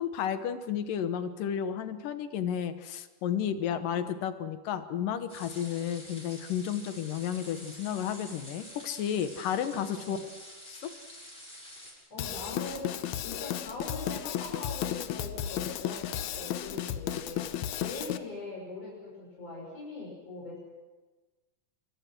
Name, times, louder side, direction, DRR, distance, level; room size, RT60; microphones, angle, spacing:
voice 1, 0.0-10.2 10.7-10.8, left 9 dB, 85° left, 10 dB, 2.9 m, -32 dB
voice 2, 3.7-4.1 5.6-5.9 9.6-10.2 12.1-17.5 17.8-20.6, left 2 dB, 50° left, -3 dB, 7.4 m, -42 dB
sound 1, 5.3-11.9, left 1 dB, 15° left, 7.5 m, -48 dB
Drum kit / Drum, 12.2-18.2, left 11 dB, 70° left, 2.1 m, -34 dB
26.5 x 23.0 x 6.2 m, 1.2 s
omnidirectional pair, 3.7 m